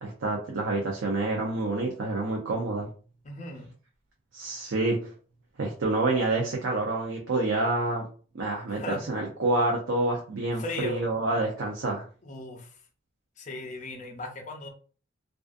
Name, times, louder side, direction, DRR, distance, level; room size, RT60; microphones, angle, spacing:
voice 1, 0.0-2.9 4.3-5.1 5.6-8.0 8.3-8.8 9.1-12.0, right 2 dB, 80° right, -1 dB, 0.5 m, -28 dB
voice 2, 3.2-3.7 8.7-9.0 10.6-11.0 12.2-12.8 13.4-14.7, left 2 dB, 40° left, 3 dB, 0.5 m, -37 dB
2.4 x 2.4 x 2.4 m, 0.39 s
head